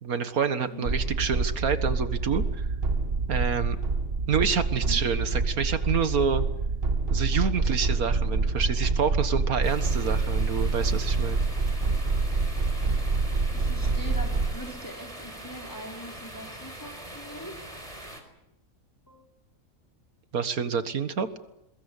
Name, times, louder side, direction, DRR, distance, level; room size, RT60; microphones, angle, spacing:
voice 1, 0.0-2.7 3.3-3.8 4.3-6.4 7.1-11.4 20.3-21.3, right 6 dB, 85° right, 10 dB, 2.0 m, -28 dB
voice 2, 0.6-1.0 4.7-5.0 13.5-17.6 19.1-19.3, equal, 15° left, 0 dB, 3.8 m, -42 dB
sound 1, 0.8-14.5, right 3 dB, 45° right, 1.6 m, -27 dB
sound 2, 9.6-18.2, right 1 dB, 25° right, 4.7 m, -42 dB
22.5 x 21.5 x 8.4 m, 0.84 s
omnidirectional pair, 1.5 m